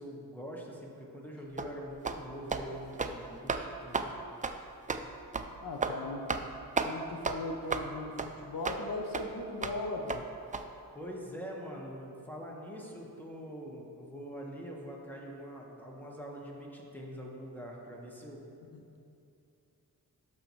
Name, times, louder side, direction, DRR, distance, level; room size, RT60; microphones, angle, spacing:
voice 1, 0.0-4.0 10.9-18.4, equal, 5° left, -2 dB, 1.4 m, -44 dB
sound 1, 1.6-1.7 2.0-2.2 2.5-2.6 2.9-3.2 3.5-3.6 3.9-4.1 4.4-4.6 4.9-5.0 5.3-5.5 5.8-6.0 6.3-6.5 6.8-6.9 7.2-7.4 7.7-7.9 8.2-8.3 8.6-8.8 9.1-9.2 9.6-9.8 10.1-10.2 10.5-10.6, right 4 dB, 20° right, 0.4 m, -32 dB
voice 2, 5.6-6.3 6.8-10.2 18.7-19.0, left 2 dB, 65° left, 2 dB, 0.7 m, -38 dB
12.5 x 5.5 x 3.1 m, 2.7 s
cardioid pair, 85°, 37 cm